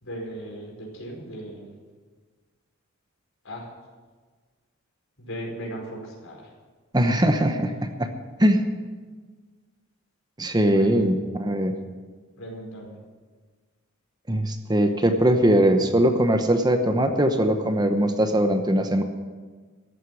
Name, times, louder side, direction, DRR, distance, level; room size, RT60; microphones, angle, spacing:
voice 1, 0.0-1.7 3.4-3.7 5.2-6.5 10.7-11.0 12.4-13.0, right 1 dB, 70° left, -1 dB, 4.8 m, -37 dB
voice 2, 6.9-8.1 8.4-8.6 10.4-11.7 14.3-19.0, right 1 dB, 20° right, 6 dB, 0.9 m, -21 dB
14.5 x 8.2 x 9.8 m, 1.4 s
head